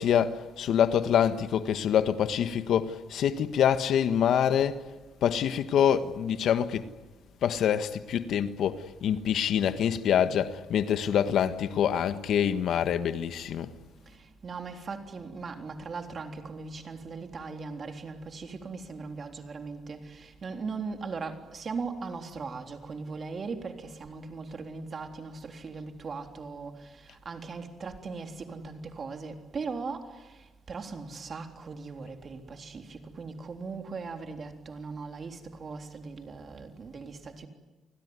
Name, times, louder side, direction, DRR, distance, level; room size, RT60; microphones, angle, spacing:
voice 1, 0.0-4.8 5.2-6.9 7.4-13.7, left 9 dB, 75° left, 1.4 m, -26 dB
voice 2, 14.1-37.5, right 4 dB, 45° right, 3.6 m, -39 dB
29.0 x 21.0 x 9.7 m
cardioid pair, 90°, 0 cm